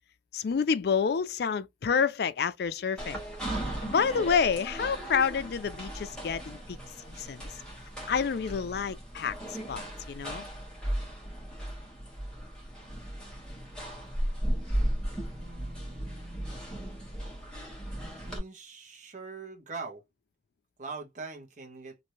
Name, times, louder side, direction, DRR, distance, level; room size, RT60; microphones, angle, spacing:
voice 1, 0.3-3.2 3.8-6.8 7.1-7.5 8.1-9.3 9.7-10.4, left 6 dB, 60° left, 0.4 m, -28 dB
sound 1, 3.0-18.4, right 1 dB, 5° left, 1.3 m, -36 dB
voice 2, 15.3-16.5 17.9-20.0 20.8-22.0, right 4 dB, 45° right, 1.0 m, -43 dB
3.2 x 2.6 x 2.7 m
head